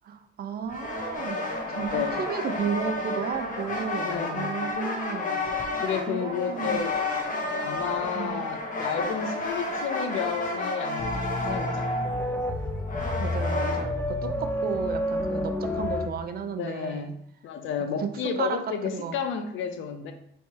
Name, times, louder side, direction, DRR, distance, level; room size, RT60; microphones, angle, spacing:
voice 1, 0.1-5.7 6.1-6.8 8.1-8.5 13.0-17.1 18.0-18.1 18.4-18.6 18.9-19.2, right 7 dB, 50° right, 8 dB, 0.5 m, -33 dB
sound 1, 0.7-13.8, left 2 dB, 40° left, 0.9 m, -31 dB
voice 2, 1.9-2.2 4.0-4.5 5.8-7.0 7.6-11.9 16.6-17.1 17.4-20.1, left 7 dB, 80° left, 7 dB, 0.5 m, -31 dB
sound 2, 11.0-16.1, left 1 dB, 10° left, 0.5 m, -29 dB
4.3 x 3.2 x 2.8 m, 0.71 s
cardioid pair, 90°, 20 cm